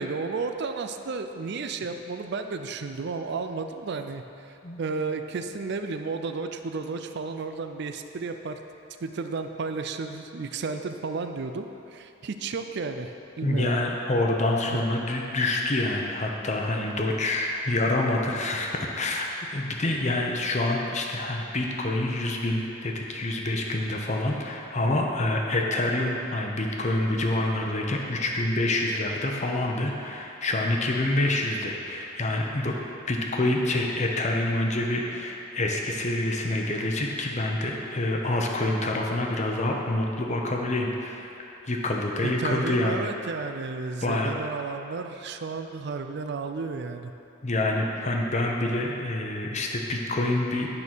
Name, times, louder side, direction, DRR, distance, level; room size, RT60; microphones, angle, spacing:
voice 1, 0.0-8.6 9.0-13.8 14.7-14.8 42.2-47.1, right 4 dB, 55° right, 7 dB, 0.4 m, -33 dB
voice 2, 13.4-32.7 33.1-41.3 41.7-43.0 44.0-44.3 47.4-50.7, left 2 dB, 35° left, 1 dB, 0.8 m, -27 dB
8.8 x 5.3 x 6.2 m, 2.9 s
head